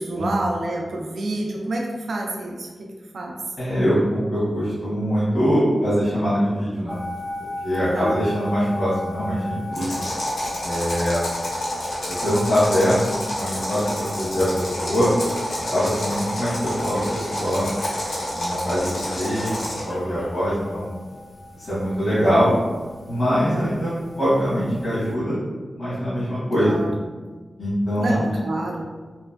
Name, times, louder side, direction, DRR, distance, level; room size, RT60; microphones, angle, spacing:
voice 1, 0.0-2.7 3.1-3.4 7.8-8.2 22.1-22.6 23.5-23.7 26.6-26.9 28.0-28.8, right 2 dB, 80° right, -1 dB, 0.3 m, -28 dB
voice 2, 3.6-7.0 7.6-10.0 10.6-11.2 12.1-15.1 15.7-17.7 18.3-21.0 21.5-22.5 23.1-25.4 25.8-26.8 27.6-28.2, equal, 65° left, -12 dB, 1.1 m, -23 dB
sound 1, 6.9-25.1, left 2 dB, 20° right, 0.5 m, -38 dB
sound 2, 9.7-19.9, left 1 dB, 85° left, 0.9 m, -29 dB
sound 3, 9.8-20.7, left 1 dB, 45° left, 0.6 m, -37 dB
3.0 x 2.4 x 2.3 m, 1.4 s
cardioid pair, 60°, 0 cm